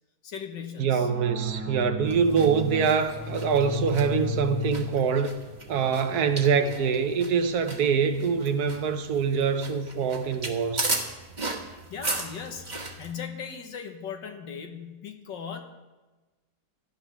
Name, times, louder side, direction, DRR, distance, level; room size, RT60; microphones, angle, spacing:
voice 1, 0.2-1.1 11.6-15.6, left 7 dB, 90° left, 5 dB, 1.9 m, -38 dB
voice 2, 0.8-5.3 5.7-10.9, right 6 dB, 65° right, 9 dB, 1.2 m, -24 dB
sound 1, 1.0-9.1, left 3 dB, 10° right, 1.6 m, -37 dB
sound 2, 2.1-13.1, right 3 dB, 30° right, 1.3 m, -37 dB
17.0 x 11.5 x 3.4 m, 1.2 s
omnidirectional pair, 1.9 m